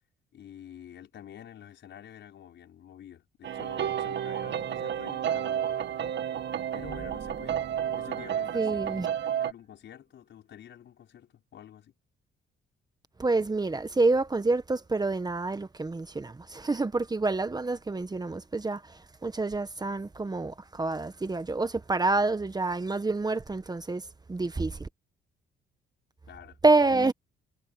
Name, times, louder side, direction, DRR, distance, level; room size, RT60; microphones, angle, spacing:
voice 1, 0.3-5.7 6.7-7.6 7.9-11.9 26.3-27.1, left 10 dB, 65° left, 5.1 m, -49 dB
sound 1, 3.4-9.5, right 9 dB, 65° right, 2.1 m, -31 dB
sound 2, 6.7-9.3, right 6 dB, 45° right, 3.5 m, -47 dB
voice 2, 8.5-9.1 13.2-24.9 26.6-27.1, right 3 dB, 20° right, 1.2 m, -27 dB
cardioid pair, 90°, 20 cm